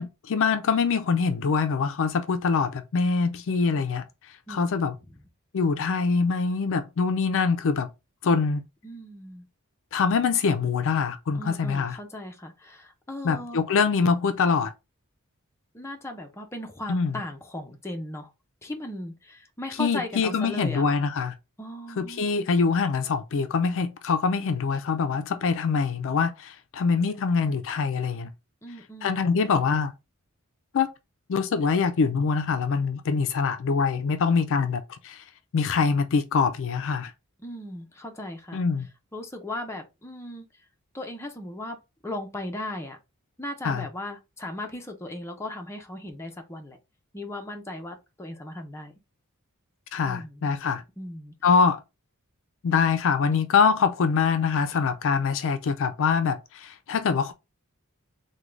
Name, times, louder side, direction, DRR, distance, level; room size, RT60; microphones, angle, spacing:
voice 1, 0.0-4.0 4.5-4.9 5.5-7.9 8.2-8.6 9.9-12.0 13.2-14.7 16.9-17.2 19.8-21.3 22.0-28.3 29.0-29.9 30.7-30.9 31.3-35.2 35.5-37.1 38.5-38.9 43.6-43.9 49.9-50.8 51.4-51.8 52.6-57.3, left 5 dB, 60° left, 0.4 m, -24 dB
voice 2, 4.5-4.8 8.8-9.5 11.3-13.6 15.7-18.3 18.6-20.9 21.6-22.3 28.6-29.1 37.4-38.6 39.1-40.5 40.9-41.8 42.0-43.0 43.4-46.8 47.1-48.9 50.0-50.5 51.0-51.3, left 1 dB, 10° left, 0.6 m, -37 dB
3.7 x 2.2 x 3.1 m
head